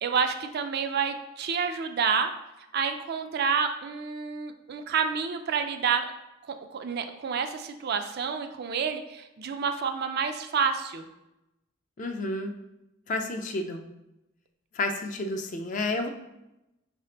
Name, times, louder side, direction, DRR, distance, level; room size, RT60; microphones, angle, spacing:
voice 1, 0.0-2.3 2.7-6.1 6.5-11.1, right 6 dB, 50° right, 7 dB, 0.3 m, -29 dB
voice 2, 12.0-12.5 13.1-13.8 14.7-16.1, left 2 dB, 35° left, 5 dB, 0.4 m, -30 dB
5.4 x 3.3 x 2.8 m, 0.94 s
head